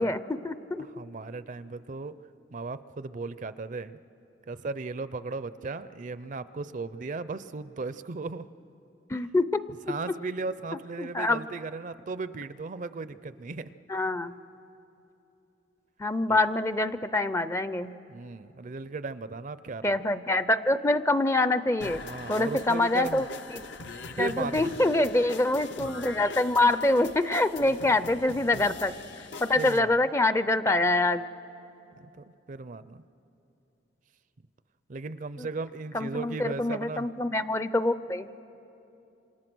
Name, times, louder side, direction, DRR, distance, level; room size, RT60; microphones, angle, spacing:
voice 1, 0.0-0.8 9.1-9.5 11.0-11.4 13.9-14.3 16.0-17.9 19.8-22.0 22.3-23.3 23.5-23.6 24.2-28.9 29.4-31.2 35.4-35.5 35.9-38.3, left 2 dB, 15° left, 13 dB, 0.5 m, -25 dB
voice 2, 1.0-2.1 2.5-4.0 4.5-8.4 9.9-13.7 16.3-16.4 18.1-20.0 22.0-23.3 24.2-24.8 27.6-27.9 29.6-30.0 32.0-33.0 34.9-37.1, right 3 dB, 45° right, 14 dB, 0.5 m, -36 dB
sound 1, 21.8-29.8, left 3 dB, 75° left, 0.9 m, -42 dB
27.5 x 26.5 x 6.2 m, 2.8 s
head